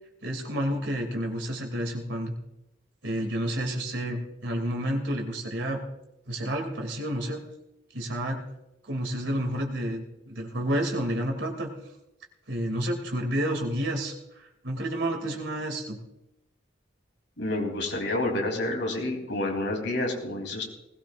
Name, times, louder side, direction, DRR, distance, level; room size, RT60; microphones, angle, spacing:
voice 1, 0.2-2.3 3.0-5.8 6.3-7.4 7.9-8.4 8.8-11.7 12.5-16.0, equal, 80° right, 2 dB, 2.9 m, -30 dB
voice 2, 17.4-20.6, left 2 dB, 75° left, 0 dB, 3.5 m, -29 dB
20.0 x 16.5 x 2.6 m, 0.90 s
head